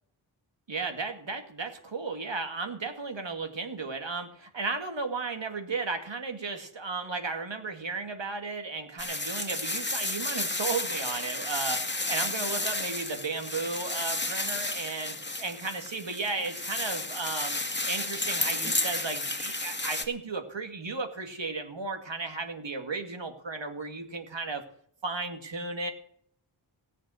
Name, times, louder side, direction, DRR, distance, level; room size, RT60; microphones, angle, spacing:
voice 1, 0.7-17.6 17.8-24.6 25.0-25.9, right 4 dB, 65° right, 6 dB, 2.3 m, -34 dB
sound 1, 9.0-20.0, left 2 dB, 25° left, 1.9 m, -32 dB
17.5 x 7.4 x 6.4 m, 0.63 s
wide cardioid pair, 55°, 47 cm